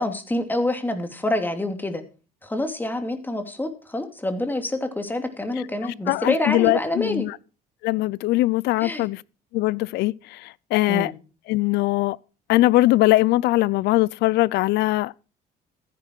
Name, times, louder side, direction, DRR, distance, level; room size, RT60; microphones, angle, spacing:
voice 1, 0.0-2.0 2.4-7.3 8.8-9.0 10.9-11.1, left 1 dB, 10° left, 2.7 m, -27 dB
voice 2, 5.8-7.4 7.8-9.2 9.5-11.1 11.5-12.2 12.5-15.2, left 18 dB, 85° left, 0.5 m, -21 dB
15.0 x 10.0 x 4.6 m
cardioid pair, 110°, 17 cm